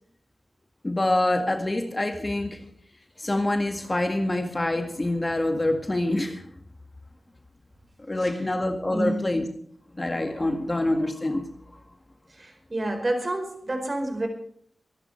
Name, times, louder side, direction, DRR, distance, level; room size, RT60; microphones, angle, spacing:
voice 1, 0.8-2.6 3.2-6.4 8.1-9.5 9.9-11.4, left 1 dB, 25° left, 5 dB, 1.9 m, -26 dB
voice 2, 8.9-9.2 12.3-14.3, right 1 dB, 35° right, 5 dB, 4.6 m, -29 dB
24.5 x 12.5 x 3.3 m, 0.62 s
wide cardioid pair, 100°, 0 cm